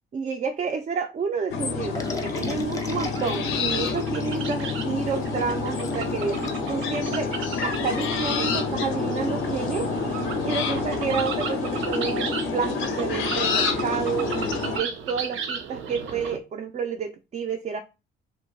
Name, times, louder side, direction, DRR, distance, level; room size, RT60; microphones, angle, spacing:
voice 1, 0.1-7.4 7.6-9.9 10.4-17.8, right 5 dB, 35° right, 0.4 m, -30 dB
sound 1, 1.5-14.8, left 5 dB, 90° left, 0.6 m, -28 dB
sound 2, 1.8-16.4, right 6 dB, 80° right, 0.6 m, -36 dB
sound 3, 1.9-7.3, left 3 dB, 15° left, 0.6 m, -39 dB
2.8 x 2.1 x 3.9 m
cardioid pair, 90°, 20 cm